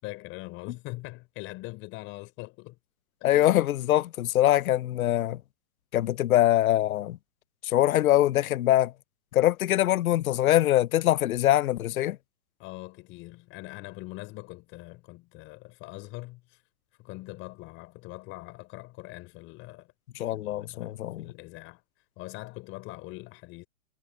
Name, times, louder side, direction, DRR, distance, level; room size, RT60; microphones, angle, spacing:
voice 1, 0.0-2.8 3.2-3.6 12.6-16.6 17.0-19.9 20.3-21.8 22.2-23.7, left 22 dB, 30° left, 5.2 m, -42 dB
voice 2, 3.2-5.4 5.9-7.2 7.6-8.9 9.3-12.2 20.2-21.2, left 13 dB, 80° left, 0.6 m, -23 dB
hypercardioid pair, 150°, 42 cm